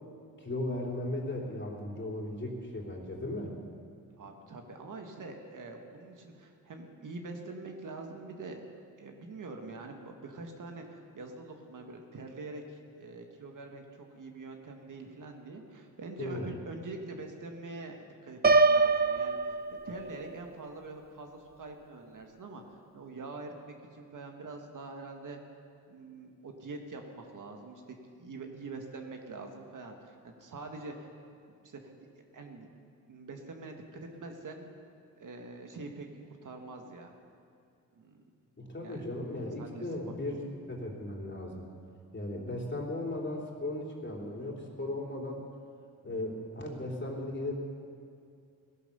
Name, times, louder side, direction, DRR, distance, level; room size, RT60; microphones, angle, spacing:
voice 1, 0.4-3.6 16.2-16.6 34.2-34.3 38.6-40.4 40.7-41.7 42.1-45.4 46.0-47.5, left 1 dB, 30° left, -1 dB, 3.5 m, -36 dB
voice 2, 4.2-8.6 9.0-19.6 19.9-22.6 22.9-25.4 25.9-27.8 28.2-31.1 31.6-31.8 32.3-32.7 33.1-34.7 35.2-37.1 37.9-38.2 38.8-39.0 39.6-40.1, right 3 dB, 55° right, 3 dB, 1.8 m, -44 dB
Piano, 18.4-20.4, right 3 dB, 25° right, 0.7 m, -24 dB
17.0 x 11.0 x 7.0 m, 2.4 s
cardioid pair, 70°, 38 cm